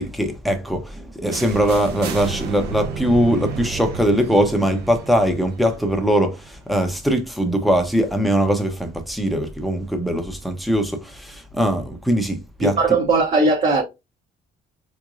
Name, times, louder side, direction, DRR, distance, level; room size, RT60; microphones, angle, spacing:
voice 1, 0.0-12.8, equal, ahead, 0.8 m, -21 dB
sound 1, 1.3-7.1, right 5 dB, 75° right, 0.7 m, -32 dB
voice 2, 12.6-13.8, right 3 dB, 40° right, 0.9 m, -18 dB
3.5 x 3.1 x 2.5 m
cardioid pair, 110°, 17 cm